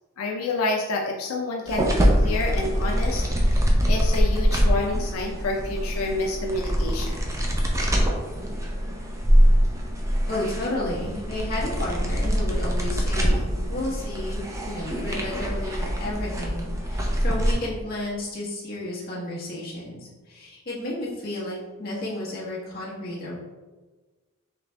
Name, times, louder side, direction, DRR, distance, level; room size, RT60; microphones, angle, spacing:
voice 1, 0.2-7.3, left 3 dB, 90° left, 0 dB, 0.5 m, -29 dB
sound 1, 1.7-17.5, equal, 15° right, 0.5 m, -24 dB
voice 2, 10.3-23.4, left 1 dB, 45° left, -5 dB, 1.3 m, -32 dB
4.0 x 3.3 x 3.3 m, 1.3 s
head